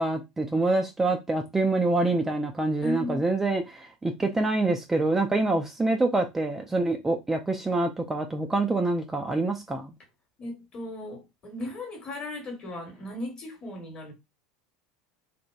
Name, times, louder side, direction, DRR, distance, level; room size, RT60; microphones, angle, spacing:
voice 1, 0.0-9.9, right 2 dB, 10° right, 0.3 m, -26 dB
voice 2, 2.8-3.2 10.4-14.1, left 2 dB, 30° left, 1.0 m, -36 dB
2.8 x 2.1 x 2.3 m
figure-of-eight pair, 75°, 3 cm